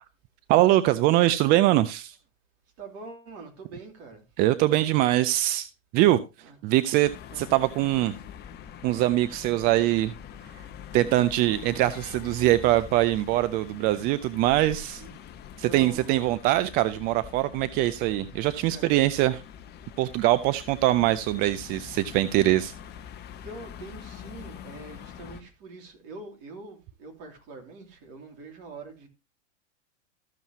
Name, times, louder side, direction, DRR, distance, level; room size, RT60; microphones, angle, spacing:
voice 1, 0.5-2.1 4.4-5.7 5.9-6.2 6.6-7.1 7.4-8.1 8.8-10.1 10.9-15.0 15.6-19.4 20.0-22.7, right 15 dB, 25° right, 0.4 m, -23 dB
voice 2, 2.8-4.2 6.4-7.5 11.0-11.2 15.0-15.1 15.6-16.3 18.7-18.9 23.4-29.1, right 3 dB, 45° right, 3.0 m, -44 dB
sound 1, 7.0-25.4, left 8 dB, 25° left, 1.1 m, -44 dB
14.0 x 7.1 x 2.9 m
hypercardioid pair, 110°, 37 cm